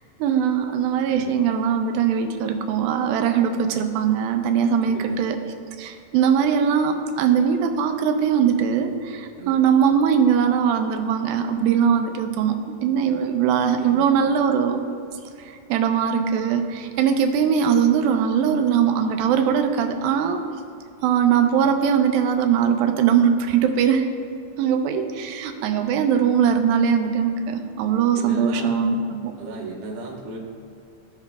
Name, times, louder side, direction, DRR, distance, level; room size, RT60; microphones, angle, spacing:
voice 1, 0.2-5.4 5.8-14.8 15.7-20.4 21.0-24.1 24.6-29.0, right 7 dB, 90° right, 6 dB, 2.5 m, -21 dB
voice 2, 4.8-5.2 9.4-9.7 13.6-14.2 28.1-28.8 29.4-30.4, right 3 dB, 65° right, -3 dB, 1.3 m, -36 dB
16.5 x 5.6 x 2.3 m, 2.4 s
omnidirectional pair, 4.1 m